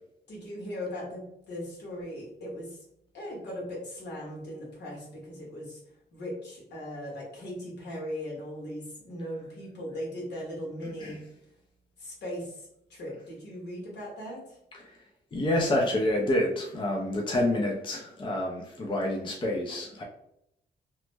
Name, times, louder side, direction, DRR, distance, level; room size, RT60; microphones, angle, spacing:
voice 1, 0.3-2.8 3.1-5.8 6.1-11.2 12.0-14.6, equal, 75° left, -4 dB, 1.4 m, -38 dB
voice 2, 15.3-20.0, left 1 dB, 30° left, -1 dB, 0.5 m, -28 dB
3.0 x 2.0 x 3.3 m, 0.79 s
wide cardioid pair, 125°, 18 cm